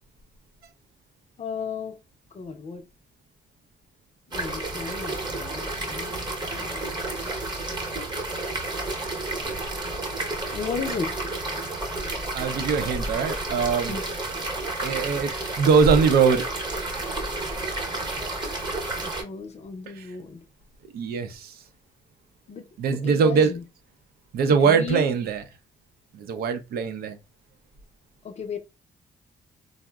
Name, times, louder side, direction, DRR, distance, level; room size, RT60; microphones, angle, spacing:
voice 1, 1.4-2.0 2.3-2.8 4.3-7.4 7.7-7.9 10.5-11.1 13.9-14.0 19.0-20.4 22.5-22.6 22.9-23.6 24.5-25.2 28.2-28.6, left 5 dB, 45° left, 0.5 m, -35 dB
sound 1, 4.3-19.2, right 2 dB, 30° right, 0.8 m, -31 dB
voice 2, 12.3-14.0 14.8-16.5 19.9-20.1 20.9-21.6 22.8-23.6 24.3-25.4 26.1-27.2, right 5 dB, 75° right, 0.5 m, -22 dB
3.6 x 2.0 x 2.2 m
cardioid pair, 80°, 16 cm